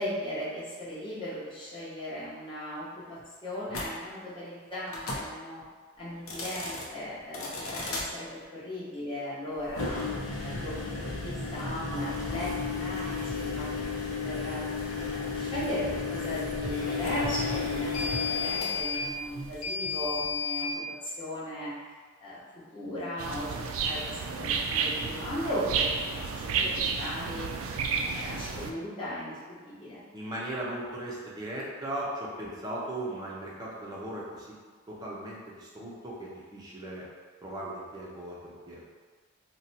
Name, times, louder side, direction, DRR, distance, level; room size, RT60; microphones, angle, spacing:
voice 1, 0.0-5.6 6.0-13.7 14.2-14.6 15.1-20.7 21.0-21.7 22.2-22.4 22.7-26.7 27.0-29.4 29.6-30.0, equal, 25° left, -10 dB, 1.0 m, -37 dB
sound 1, 3.7-3.9 4.9-5.3 6.2-6.9 7.3-8.1 9.7-20.7, left 4 dB, 80° left, 0.6 m, -33 dB
sound 2, 23.2-28.7, right 5 dB, 70° right, 0.3 m, -31 dB
voice 2, 30.1-34.6 34.9-37.0 37.4-38.9, right 1 dB, 20° right, -5 dB, 0.6 m, -38 dB
2.7 x 2.2 x 4.0 m, 1.5 s
head